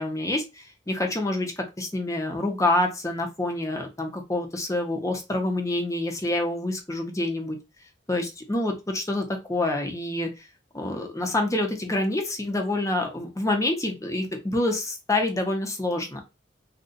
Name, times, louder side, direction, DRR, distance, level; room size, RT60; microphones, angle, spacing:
voice 1, 0.0-1.5 1.8-7.6 8.1-10.5 10.7-16.2, left 2 dB, 15° left, 3 dB, 0.7 m, -27 dB
3.8 x 2.3 x 2.6 m, 0.25 s
head